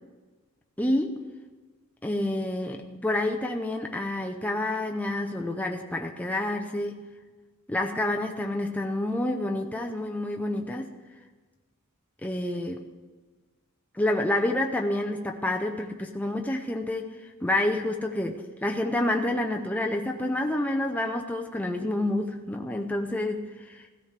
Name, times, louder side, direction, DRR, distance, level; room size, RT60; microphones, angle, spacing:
voice 1, 0.8-1.2 2.0-7.0 7.7-10.9 12.2-12.9 13.9-23.9, left 1 dB, 5° left, 2 dB, 0.5 m, -28 dB
16.5 x 13.5 x 3.3 m, 1.3 s
head